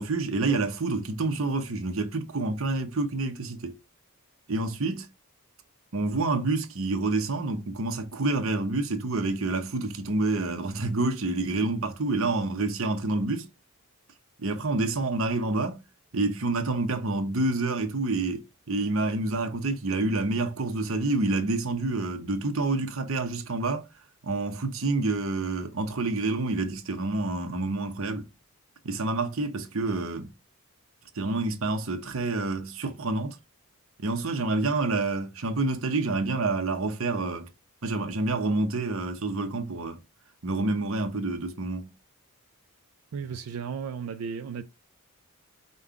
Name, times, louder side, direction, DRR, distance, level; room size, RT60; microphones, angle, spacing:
voice 1, 0.0-3.8 4.5-5.1 5.9-13.5 14.4-15.8 16.1-23.8 24.2-28.3 28.8-30.3 31.2-33.4 34.0-37.5 37.8-40.0 40.4-41.9, right 2 dB, 65° right, 0.8 m, -28 dB
voice 2, 43.1-44.6, right 6 dB, 85° right, 0.4 m, -34 dB
5.4 x 2.2 x 3.6 m
head